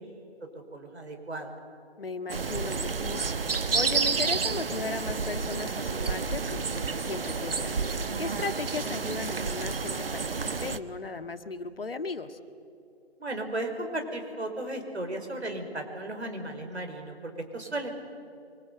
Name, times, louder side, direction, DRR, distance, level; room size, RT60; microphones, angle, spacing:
voice 1, 0.7-1.5 13.2-17.9, right 1 dB, 75° right, 5 dB, 5.3 m, -35 dB
voice 2, 2.0-3.3 3.5-7.7 8.2-12.4, left 4 dB, 55° left, 9 dB, 1.8 m, -36 dB
sound 1, 2.3-10.8, right 4 dB, 55° right, 1.2 m, -30 dB
24.5 x 24.5 x 8.3 m, 2.6 s
figure-of-eight pair, 155°, 33 cm